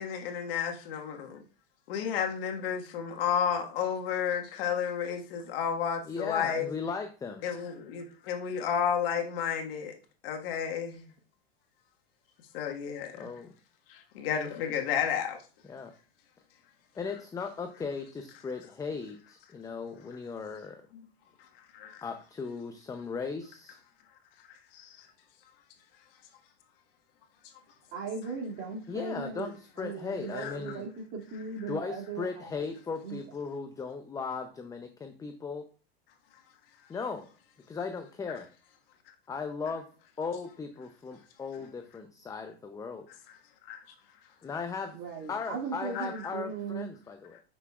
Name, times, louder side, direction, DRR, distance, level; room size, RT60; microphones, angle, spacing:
voice 1, 0.0-1.4 1.9-6.7 7.4-9.9 10.2-11.1 12.5-13.3 13.9-15.4 21.7-22.0 24.7-25.1 30.4-30.8 43.6-43.8 45.9-46.1, left 8 dB, 65° left, 1.6 m, -32 dB
voice 2, 6.1-7.4 13.1-13.5 15.7-15.9 16.9-20.8 22.0-23.8 28.9-30.8 31.7-35.7 36.9-37.3 37.7-38.5 39.3-39.9 40.2-43.1 44.4-45.0 45.3-47.4, left 5 dB, 10° left, 0.6 m, -37 dB
voice 3, 27.9-32.5 33.0-33.2 41.6-41.7 44.9-46.9, right 5 dB, 40° right, 2.4 m, -38 dB
9.0 x 6.1 x 2.4 m
hypercardioid pair, 120°, 32 cm